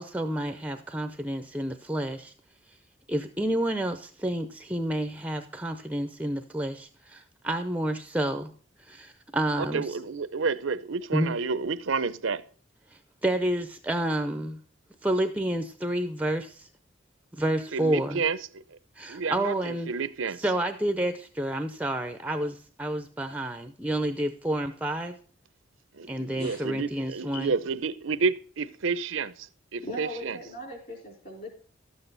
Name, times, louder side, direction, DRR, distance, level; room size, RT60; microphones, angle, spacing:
voice 1, 0.0-2.3 3.1-8.5 8.8-10.0 11.1-11.4 12.9-14.6 15.0-16.7 17.3-18.2 19.0-19.9 20.4-25.2 26.1-27.5, right 1 dB, 5° right, 0.5 m, -29 dB
voice 2, 9.6-12.4 17.7-18.8 19.1-20.4 25.9-30.4, right 4 dB, 90° right, 0.7 m, -30 dB
voice 3, 29.8-31.6, equal, 45° left, 4.2 m, -39 dB
12.5 x 7.9 x 4.0 m
head